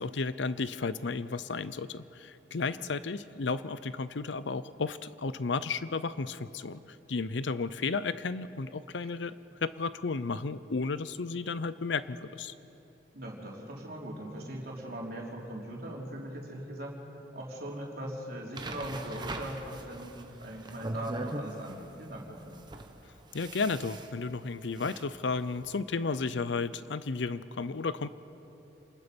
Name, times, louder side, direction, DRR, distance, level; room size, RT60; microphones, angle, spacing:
voice 1, 0.0-9.3 9.6-12.5 23.3-28.1, left 4 dB, 75° left, 15 dB, 0.6 m, -33 dB
voice 2, 13.1-17.0 17.3-22.6, right 1 dB, 55° right, -2 dB, 3.6 m, -40 dB
sound 1, 18.5-25.8, right 2 dB, 25° right, 1.2 m, -41 dB
28.0 x 20.0 x 5.3 m, 3.0 s
head